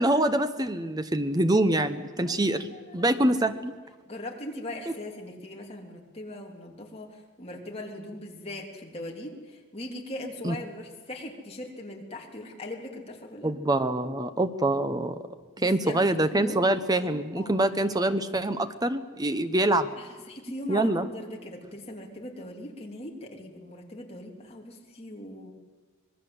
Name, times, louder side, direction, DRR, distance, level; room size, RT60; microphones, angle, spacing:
voice 1, 0.0-3.7 10.4-10.6 13.4-15.2 15.6-19.9 20.7-21.1, right 1 dB, 15° right, 10 dB, 0.9 m, -25 dB
voice 2, 2.2-3.5 4.1-13.5 15.6-16.0 16.3-16.6 17.4-17.7 20.0-25.5, left 1 dB, 25° left, 0 dB, 3.3 m, -40 dB
26.0 x 20.5 x 8.0 m, 1.4 s
head